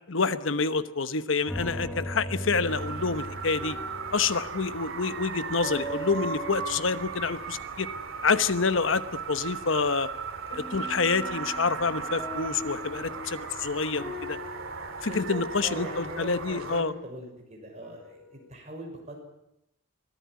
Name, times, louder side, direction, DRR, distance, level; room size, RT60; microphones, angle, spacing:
voice 1, 0.1-3.8 4.1-7.9 8.2-9.0 9.3-10.1 10.5-14.4 15.0-16.9, left 4 dB, 70° left, 13 dB, 1.1 m, -27 dB
sound 1, 1.5-8.0 10.5-16.9 17.8-18.4, equal, 5° left, 2.7 m, -40 dB
sound 2, 2.7-16.8, right 5 dB, 80° right, 2.7 m, -37 dB
voice 2, 15.1-19.1, right 1 dB, 35° right, 1 dB, 6.4 m, -40 dB
23.0 x 15.5 x 9.5 m, 0.83 s
head